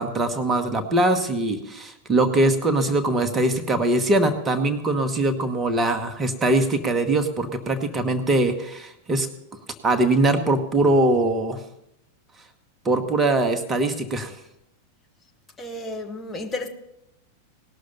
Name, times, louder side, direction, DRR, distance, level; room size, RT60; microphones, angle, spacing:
voice 1, 0.0-9.3 9.8-11.6 12.8-14.3, right 2 dB, 20° right, 1.2 m, -22 dB
voice 2, 15.6-16.7, left 2 dB, 15° left, 1.0 m, -32 dB
18.5 x 6.5 x 5.5 m
figure-of-eight pair, 90°, 0 cm